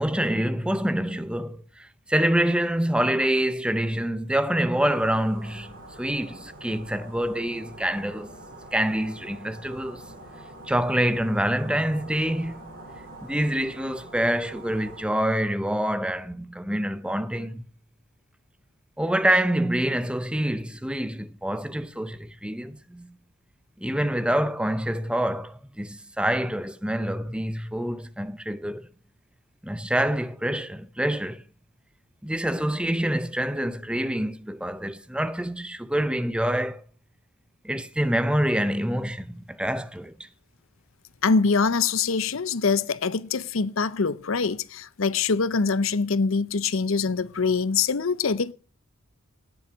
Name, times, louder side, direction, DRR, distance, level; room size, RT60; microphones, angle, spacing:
voice 1, 0.0-8.3 8.7-10.0 10.7-12.8 13.2-17.6 19.0-23.1 23.8-28.9 29.6-31.4 32.2-36.8 37.6-40.3, right 1 dB, 5° right, 0.6 m, -26 dB
sound 1, 4.9-15.0, right 1 dB, 40° right, 7.0 m, -45 dB
voice 2, 41.2-48.5, left 4 dB, 65° left, 0.7 m, -24 dB
17.5 x 7.4 x 6.1 m
head